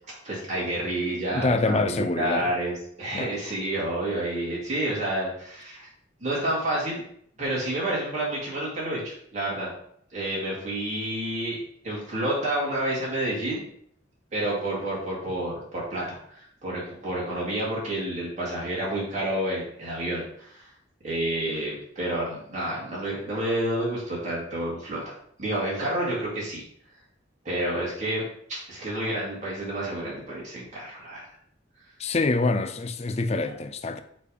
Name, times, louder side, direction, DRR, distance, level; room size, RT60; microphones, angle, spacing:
voice 1, 0.2-5.9 6.2-7.0 7.4-9.7 10.1-11.6 11.8-13.6 14.3-20.7 21.0-25.1 25.4-26.6 27.4-31.2, right 1 dB, 35° right, 2.2 m, -29 dB
voice 2, 1.3-2.5 3.1-3.3 32.0-34.0, left 3 dB, 35° left, 0.4 m, -26 dB
6.6 x 3.4 x 5.0 m
head